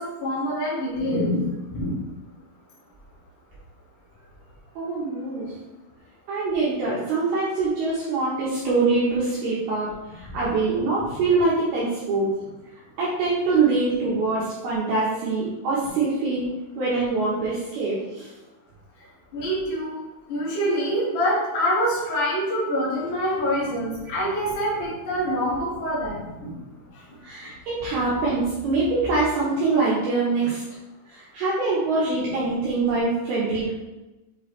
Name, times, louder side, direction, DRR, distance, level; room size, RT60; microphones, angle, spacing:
voice 1, 0.0-1.4 1.7-2.1 10.3-10.4 19.3-20.0 20.3-26.5, equal, 50° left, -8 dB, 1.4 m, -25 dB
voice 2, 4.8-5.5 6.3-12.3 13.0-16.5 16.8-18.3 27.2-30.6 31.1-33.7, right 3 dB, 70° right, -8 dB, 2.7 m, -24 dB
7.8 x 4.6 x 3.3 m, 1.1 s
omnidirectional pair, 5.5 m